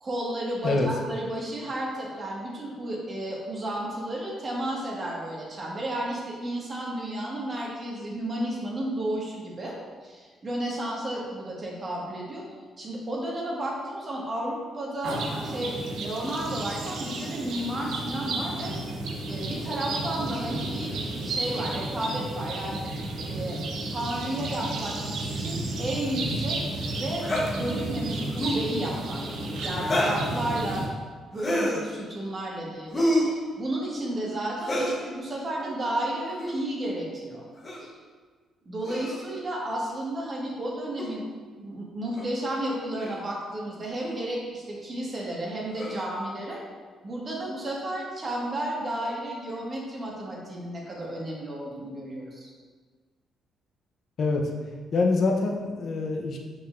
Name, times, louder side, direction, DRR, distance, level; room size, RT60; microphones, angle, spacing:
voice 1, 0.0-9.8 10.0-12.4 12.8-18.7 19.3-22.8 23.3-23.6 23.9-29.2 29.6-30.9 31.3-37.4 37.8-37.9 38.7-41.2 41.6-46.6 47.0-52.5, right 1 dB, 35° right, -3 dB, 1.8 m, -32 dB
sound 1, 15.0-30.9, right 2 dB, 80° right, 0.9 m, -32 dB
sound 2, 27.2-27.5 28.3-28.7 29.8-30.3 31.4-31.8 32.9-33.4 34.6-35.0 36.3-36.6 37.6-37.9 38.8-39.3 41.0-41.1 42.2-42.3 43.0-43.2 44.0-44.2 45.7-46.1, equal, 35° left, 1.2 m, -28 dB
voice 2, 54.2-54.5 54.9-56.4, left 3 dB, 55° left, 1 dB, 0.8 m, -25 dB
6.7 x 5.5 x 2.6 m, 1.5 s
cardioid pair, 90°, 0 cm